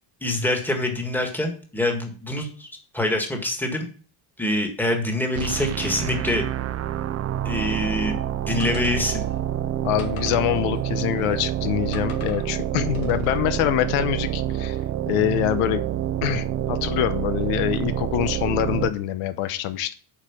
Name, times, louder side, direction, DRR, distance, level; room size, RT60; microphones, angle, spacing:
voice 1, 0.2-2.7 2.9-3.9 4.4-6.4 7.4-9.2, left 1 dB, 5° left, 2 dB, 1.7 m, -25 dB
sound 1, 5.3-18.9, right 11 dB, 35° right, 0.4 m, -27 dB
sound 2, 8.6-9.4 10.0-11.5 11.9-12.5 12.9-13.4, left 5 dB, 65° left, 2.4 m, -44 dB
voice 2, 9.8-14.8 15.1-15.8 16.2-19.9, left 13 dB, 90° left, 11 dB, 1.1 m, -25 dB
8.5 x 4.9 x 7.2 m, 0.41 s
cardioid pair, 150°, 48 cm